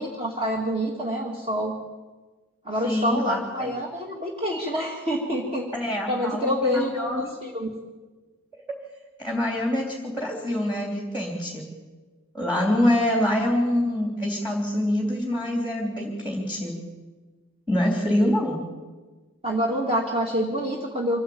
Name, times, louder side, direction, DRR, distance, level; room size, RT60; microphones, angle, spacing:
voice 1, 0.0-1.8 2.6-7.7 19.4-21.2, equal, 25° right, -1 dB, 2.3 m, -27 dB
voice 2, 2.8-3.7 5.7-7.7 9.2-11.7 12.3-16.7 17.7-18.6, left 1 dB, 10° right, -1 dB, 3.4 m, -25 dB
25.5 x 15.0 x 8.8 m, 1.3 s
head